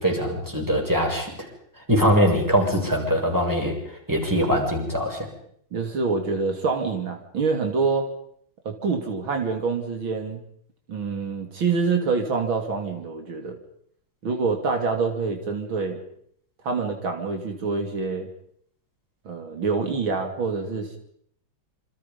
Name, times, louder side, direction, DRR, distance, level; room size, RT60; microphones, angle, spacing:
voice 1, 0.0-1.5 1.9-3.8 4.1-5.3, equal, 10° right, 0 dB, 7.0 m, -22 dB
voice 2, 5.7-8.1 8.7-10.4 10.9-13.6 14.2-16.0 16.6-18.3 19.3-21.0, right 4 dB, 75° right, 4 dB, 3.5 m, -26 dB
28.0 x 26.5 x 5.4 m, 0.66 s
omnidirectional pair, 2.2 m